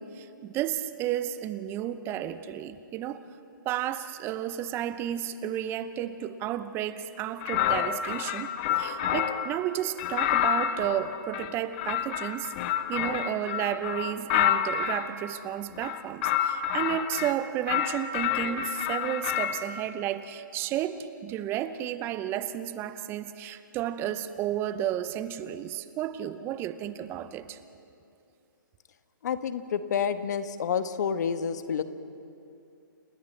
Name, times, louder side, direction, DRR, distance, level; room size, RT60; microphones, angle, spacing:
voice 1, 0.0-3.3 3.6-12.5 12.9-27.6, right 11 dB, 20° right, 0.8 m, -32 dB
sound 1, 7.4-9.5 10.0-15.1 15.7-17.3 17.7-19.6, left 10 dB, 35° left, 1.0 m, -28 dB
voice 2, 29.2-31.8, left 7 dB, 55° left, 1.3 m, -29 dB
30.0 x 28.0 x 3.3 m
hypercardioid pair, 135°, 11 cm